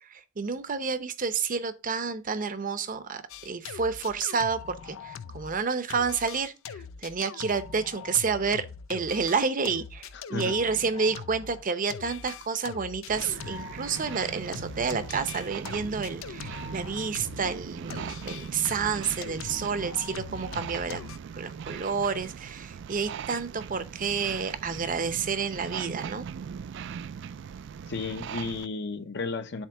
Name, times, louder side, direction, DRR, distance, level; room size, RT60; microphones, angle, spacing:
voice 1, 0.0-21.0 21.3-26.3, right 5 dB, 45° right, 0.7 m, -30 dB
sound 1, 3.3-5.6 5.9-17.6 17.9-21.2, left 7 dB, 85° left, 0.4 m, -42 dB
sound 2, 13.1-28.7, right 7 dB, 65° right, 0.3 m, -40 dB
voice 2, 27.9-29.7, left 4 dB, 60° left, 0.8 m, -33 dB
7.3 x 3.1 x 5.7 m
head